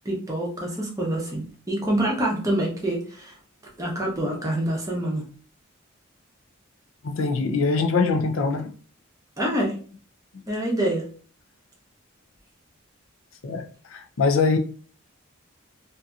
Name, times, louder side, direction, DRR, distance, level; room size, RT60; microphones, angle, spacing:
voice 1, 0.0-3.3 3.8-5.2 9.4-9.8 10.5-11.0, right 1 dB, 15° right, -2 dB, 0.7 m, -26 dB
voice 2, 7.0-8.7 13.4-13.6 13.9-14.6, left 4 dB, 65° left, 6 dB, 0.4 m, -23 dB
2.7 x 2.5 x 2.3 m, 0.41 s
head